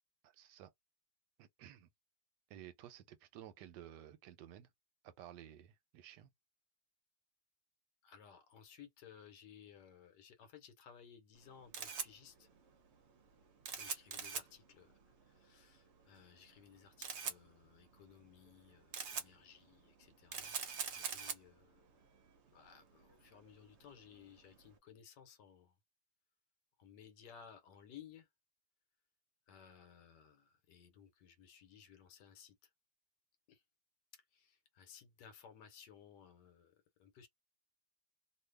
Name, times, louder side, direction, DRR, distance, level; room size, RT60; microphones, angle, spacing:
voice 1, 0.2-0.7 1.4-1.9 2.5-4.7 5.0-6.3, right 11 dB, 90° right, 1.2 m, -54 dB
voice 2, 8.0-12.5 13.8-14.9 15.4-20.6 20.9-21.9 22.5-25.7 26.8-28.3 29.5-32.5 33.5-33.6 34.3-36.7 37.0-37.3, left 8 dB, 80° left, 1.4 m, -59 dB
Camera, 11.4-24.7, right 6 dB, 55° right, 0.8 m, -46 dB
2.8 x 2.5 x 3.2 m
omnidirectional pair, 1.8 m